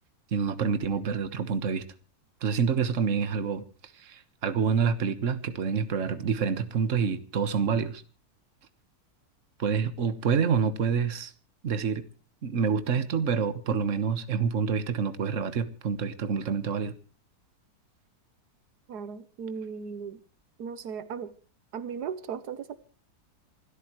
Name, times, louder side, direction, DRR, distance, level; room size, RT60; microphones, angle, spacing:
voice 1, 0.3-1.8 2.4-3.7 3.9-8.0 9.6-11.3 11.6-12.0 12.4-16.9, right 6 dB, 50° right, 1.6 m, -27 dB
voice 2, 18.9-20.2 20.6-21.3 21.7-22.8, right 6 dB, 80° right, 1.5 m, -36 dB
27.0 x 13.5 x 3.1 m
omnidirectional pair, 1.7 m